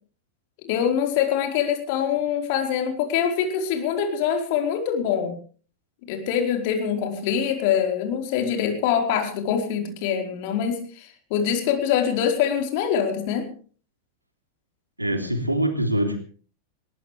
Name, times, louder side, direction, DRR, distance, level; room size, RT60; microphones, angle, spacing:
voice 1, 0.6-5.4 6.1-13.5, left 8 dB, 45° left, 3 dB, 4.6 m, -24 dB
voice 2, 15.0-16.2, right 1 dB, 85° right, 5 dB, 3.2 m, -24 dB
21.0 x 18.0 x 3.4 m, 0.42 s
figure-of-eight pair, 90°, 0 cm